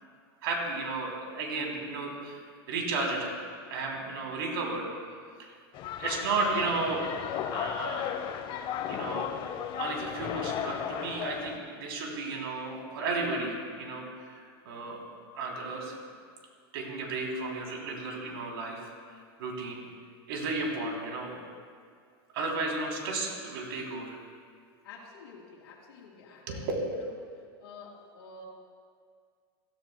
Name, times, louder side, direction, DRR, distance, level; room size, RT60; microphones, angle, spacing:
voice 1, 0.4-2.4 2.7-3.4 3.7-4.9 5.4-5.5 6.0-7.1 7.5-8.1 8.9-9.3 9.8-15.0 15.3-16.0 16.7-18.9 19.4-19.8 20.3-21.3 22.3-24.2 26.5-26.6, right 3 dB, 75° right, -1 dB, 3.1 m, -33 dB
sound 1, 5.7-11.6, left 9 dB, 40° left, 0.8 m, -35 dB
voice 2, 24.8-26.7 27.6-28.5, left 4 dB, 70° left, -5 dB, 2.4 m, -49 dB
15.5 x 14.0 x 2.2 m, 2.1 s
supercardioid pair, 120°, 13 cm